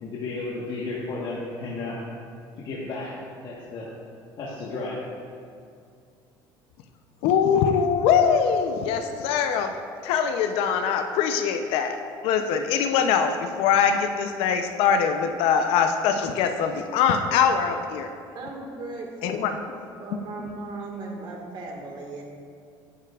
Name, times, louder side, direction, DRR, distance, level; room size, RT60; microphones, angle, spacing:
voice 1, 0.0-2.0 2.6-3.9 4.4-5.1, left 3 dB, 50° left, -5 dB, 1.3 m, -33 dB
voice 2, 7.2-9.7 10.0-12.0 12.2-18.1 19.2-19.6, left 7 dB, 75° left, 6 dB, 0.5 m, -22 dB
voice 3, 18.3-19.6 20.0-22.2, right 2 dB, 50° right, 0 dB, 1.7 m, -37 dB
10.0 x 9.5 x 2.4 m, 2.3 s
cardioid pair, 120°, 10 cm